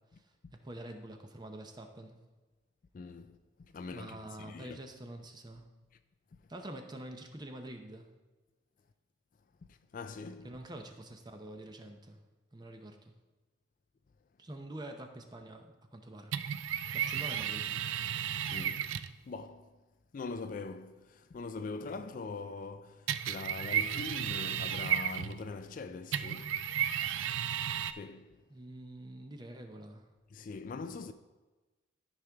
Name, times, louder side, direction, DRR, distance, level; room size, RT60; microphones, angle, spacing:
voice 1, 0.6-2.2 3.9-5.7 6.5-8.1 10.4-12.2 12.5-13.1 14.4-16.3 16.6-17.8 28.5-30.1, right 1 dB, 20° right, 0.7 m, -46 dB
voice 2, 2.9-4.8 9.7-10.5 18.5-19.8 20.1-26.7 27.9-28.4 30.3-31.1, left 4 dB, 40° left, 0.3 m, -43 dB
sound 1, 16.3-19.2 23.1-25.5 26.1-27.9, right 9 dB, 70° right, 0.3 m, -33 dB
12.5 x 5.2 x 3.5 m
head